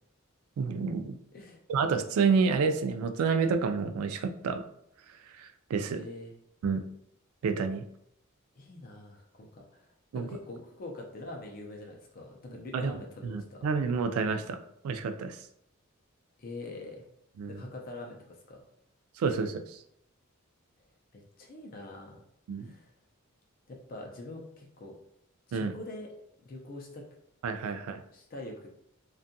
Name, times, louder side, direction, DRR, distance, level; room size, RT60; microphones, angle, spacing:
voice 1, 0.6-1.2 1.7-4.6 5.4-6.0 6.6-6.8 7.4-7.8 10.1-10.3 12.7-12.9 13.2-15.4 17.4-17.6 19.2-19.8 22.5-22.7 25.5-25.7 27.4-28.0, right 5 dB, 80° right, 12 dB, 0.3 m, -29 dB
voice 2, 5.8-6.3 8.6-13.7 16.4-17.1 17.4-18.6 21.1-22.2 22.6-22.9 23.7-25.0 25.5-26.1 26.5-27.0 27.7-27.8 28.1-28.7, left 2 dB, 40° left, 1 dB, 0.4 m, -44 dB
2.6 x 2.3 x 2.6 m, 0.73 s
head